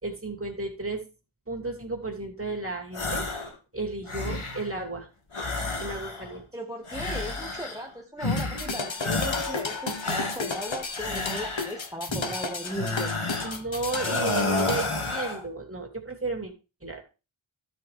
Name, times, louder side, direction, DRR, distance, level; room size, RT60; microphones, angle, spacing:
voice 1, 0.0-1.0 1.5-3.5 3.7-5.1 5.8-6.4 12.1-12.3 13.4-16.5 16.8-17.0, right 3 dB, 25° right, 1 dB, 2.8 m, -33 dB
sound 1, 2.9-3.5 3.9-4.7 5.3-6.4 6.9-7.9 8.2-8.7 9.0-9.7 10.0-11.9 12.6-13.6 13.9-15.4, left 3 dB, 90° left, 2.2 m, -31 dB
voice 2, 6.5-13.1, equal, 5° right, 3 dB, 1.2 m, -37 dB
sound 2, 8.3-14.9, left 4 dB, 65° left, 1.3 m, -33 dB
12.0 x 5.2 x 4.8 m, 0.31 s
wide cardioid pair, 45°, 49 cm